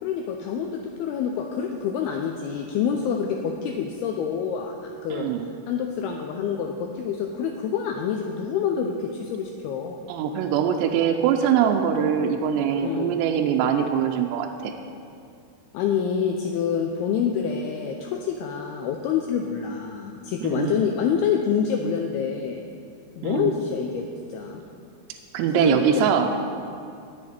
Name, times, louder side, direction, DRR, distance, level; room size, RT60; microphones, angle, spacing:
voice 1, 0.0-5.3 5.7-10.1 12.8-13.1 15.7-22.6 23.2-24.0 24.3-24.6 25.5-25.8, left 7 dB, 90° left, 3 dB, 2.2 m, -27 dB
voice 2, 5.1-5.5 10.1-14.7 20.4-20.8 23.2-23.6 25.3-26.3, right 8 dB, 80° right, 3 dB, 2.7 m, -23 dB
18.5 x 6.6 x 4.3 m, 2.4 s
omnidirectional pair, 5.2 m